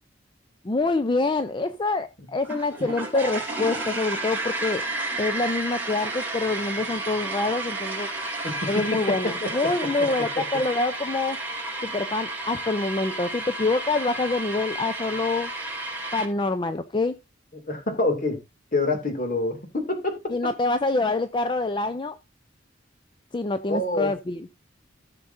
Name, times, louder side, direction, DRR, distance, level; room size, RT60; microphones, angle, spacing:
voice 1, 0.6-4.8 5.2-8.1 8.7-11.4 11.8-15.5 16.1-17.1 20.3-22.2 23.3-24.5, left 3 dB, 25° left, 0.5 m, -26 dB
sound 1, 2.4-16.2, right 2 dB, 10° right, 2.7 m, -32 dB
voice 2, 8.4-10.4 17.7-18.4 18.7-20.1 20.9-21.1 23.7-24.1, left 2 dB, 45° left, 2.3 m, -27 dB
14.5 x 6.7 x 2.6 m
head